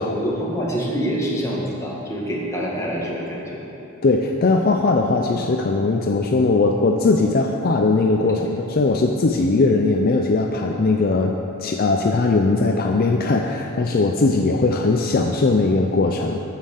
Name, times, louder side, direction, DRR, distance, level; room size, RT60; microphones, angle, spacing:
voice 1, 0.0-3.6, equal, 15° left, -4 dB, 1.7 m, -26 dB
voice 2, 4.0-11.3 11.6-16.4, left 3 dB, 45° left, 2 dB, 0.5 m, -19 dB
9.1 x 7.4 x 6.6 m, 2.8 s
head